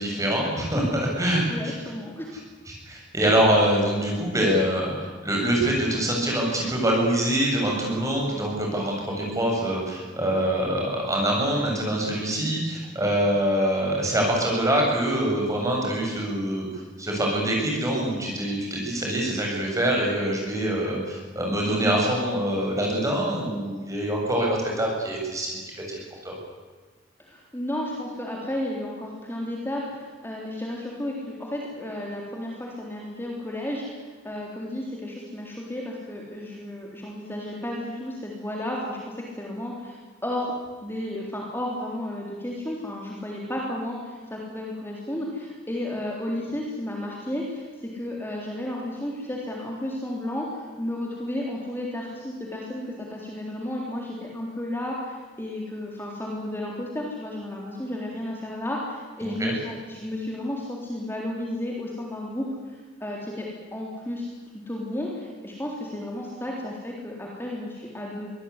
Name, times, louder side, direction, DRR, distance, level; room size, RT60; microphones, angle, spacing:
voice 1, 0.0-1.7 2.7-16.7 17.0-25.6 25.9-26.3 59.2-59.5, right 1 dB, 15° right, -1 dB, 7.6 m, -25 dB
voice 2, 1.5-2.3 27.2-40.5 40.8-47.6 47.9-64.3 64.7-68.3, left 1 dB, 10° left, -2 dB, 3.8 m, -33 dB
24.0 x 19.0 x 9.8 m, 1.4 s
head